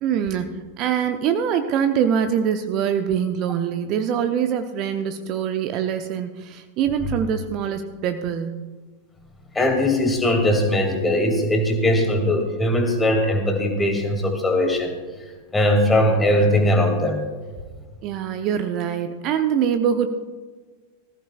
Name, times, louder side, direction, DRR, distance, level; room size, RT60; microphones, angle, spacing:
voice 1, 0.0-8.6 18.0-20.1, right 8 dB, 40° right, 8 dB, 0.7 m, -24 dB
voice 2, 9.5-14.9 15.5-17.2, left 1 dB, 10° left, 3 dB, 2.4 m, -20 dB
19.0 x 14.5 x 2.4 m, 1.4 s
figure-of-eight pair, 90°, 0 cm